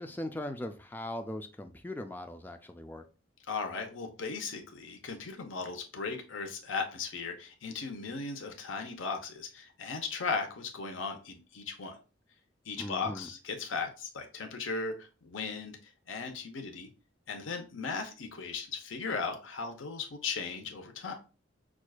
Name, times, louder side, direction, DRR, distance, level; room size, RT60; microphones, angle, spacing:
voice 1, 0.0-3.0 12.8-13.3, left 1 dB, 10° left, 7 dB, 0.3 m, -39 dB
voice 2, 3.5-12.0 12.7-16.9 17.3-21.1, left 4 dB, 90° left, 4 dB, 0.8 m, -37 dB
6.0 x 2.4 x 2.3 m, 0.33 s
head